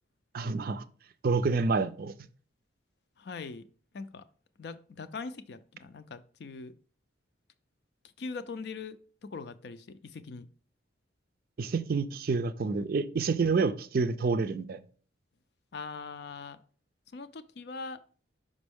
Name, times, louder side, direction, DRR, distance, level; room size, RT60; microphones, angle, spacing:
voice 1, 0.3-0.8 1.2-2.1 11.6-14.8, right 4 dB, 50° right, 0.4 m, -28 dB
voice 2, 3.2-3.6 3.9-4.2 4.6-6.7 8.2-9.0 9.2-10.5 15.7-16.6 17.1-18.0, left 4 dB, 60° left, 0.4 m, -41 dB
5.2 x 5.2 x 3.5 m
head